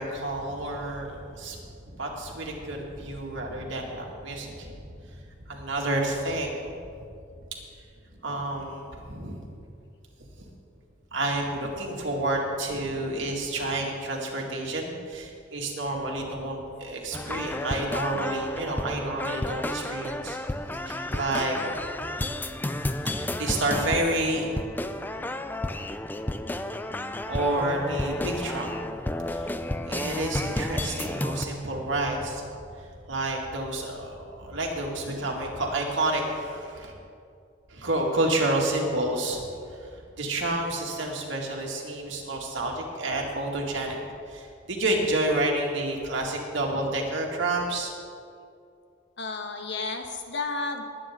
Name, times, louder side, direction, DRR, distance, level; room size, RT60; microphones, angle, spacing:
voice 1, 0.0-7.0 8.2-9.6 11.1-20.4 20.9-21.7 23.0-24.5 27.3-29.6 29.9-36.9 37.7-44.0 44.3-47.9, right 1 dB, 75° right, -1 dB, 2.2 m, -30 dB
sound 1, 17.1-31.4, left 1 dB, 10° left, 0.4 m, -32 dB
voice 2, 49.2-50.8, left 3 dB, 65° left, 4 dB, 1.3 m, -32 dB
20.5 x 9.2 x 3.7 m, 2.4 s
head